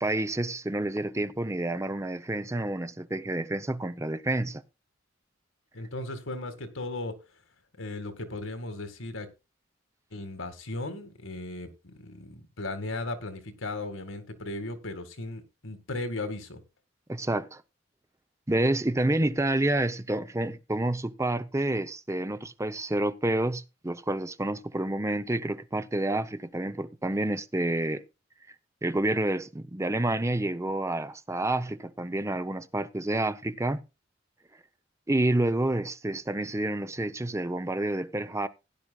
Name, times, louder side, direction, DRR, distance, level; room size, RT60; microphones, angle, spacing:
voice 1, 0.0-4.6 17.1-17.6 18.5-28.0 28.8-33.8 35.1-38.5, right 1 dB, 15° right, 0.6 m, -29 dB
voice 2, 5.7-7.2 7.8-9.3 10.1-16.6, left 2 dB, 85° left, 2.0 m, -36 dB
16.5 x 10.5 x 2.3 m
head